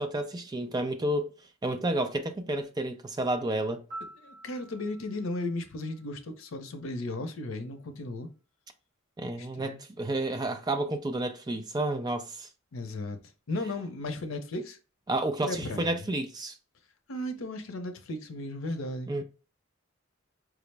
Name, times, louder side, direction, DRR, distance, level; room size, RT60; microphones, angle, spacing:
voice 1, 0.0-1.3 1.6-3.8 9.2-12.5 15.1-16.6 19.1-19.2, right 1 dB, 20° right, 0.4 m, -30 dB
Piano, 3.9-6.8 15.0-15.2, right 2 dB, 40° right, 1.6 m, -48 dB
voice 2, 4.2-8.3 9.4-9.8 12.7-13.2 13.5-14.8 15.4-16.1 17.1-19.2, left 2 dB, 85° left, 0.6 m, -35 dB
4.7 x 2.0 x 3.2 m
head